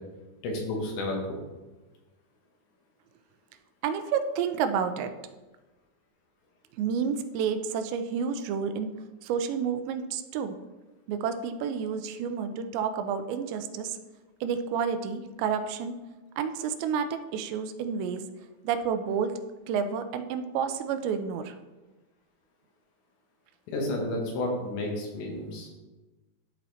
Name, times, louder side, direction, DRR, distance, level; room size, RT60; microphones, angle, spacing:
voice 1, 0.4-1.4 23.7-25.7, left 1 dB, 80° left, 0 dB, 3.8 m, -31 dB
voice 2, 3.8-5.1 6.8-8.9 9.2-10.6 11.1-14.0 14.4-16.0 16.4-18.2 18.6-21.6, right 7 dB, 85° right, 9 dB, 2.8 m, -30 dB
12.0 x 4.2 x 4.2 m, 1.2 s
omnidirectional pair, 5.1 m